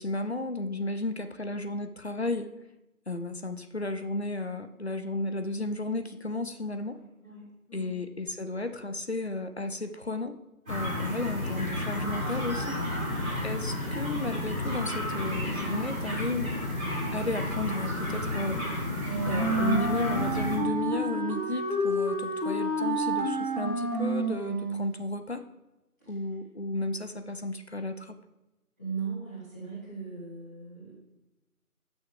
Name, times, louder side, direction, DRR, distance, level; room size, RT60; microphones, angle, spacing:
voice 1, 0.0-2.5 3.1-7.0 7.7-10.4 10.7-12.8 13.4-16.5 17.1-18.6 19.2-25.4 26.1-28.1, left 2 dB, 45° left, 9 dB, 0.6 m, -33 dB
voice 2, 6.6-8.0 28.8-30.9, right 5 dB, 10° left, -16 dB, 2.3 m, -39 dB
sound 1, 10.7-20.6, left 1 dB, 5° right, 1.8 m, -32 dB
Wind instrument woodwind instrument, 19.0-24.9, right 1 dB, 35° right, 1.3 m, -29 dB
15.5 x 6.3 x 3.3 m, 1.0 s
figure-of-eight pair, 170°, 44 cm